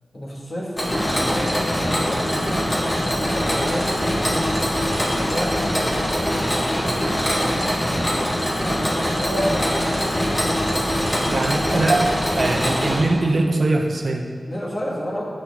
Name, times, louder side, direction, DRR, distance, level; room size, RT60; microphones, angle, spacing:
voice 1, 0.1-2.7 3.0-4.6 5.1-5.6 5.9-6.3 8.6-9.9 14.5-15.2, equal, 45° left, -4 dB, 1.5 m, -30 dB
Mechanisms, 0.8-13.0, equal, 30° left, 1.6 m, -22 dB
voice 2, 11.3-14.3, right 2 dB, 60° right, 2 dB, 0.6 m, -22 dB
8.7 x 6.5 x 3.4 m, 2.1 s
wide cardioid pair, 100°, 0 cm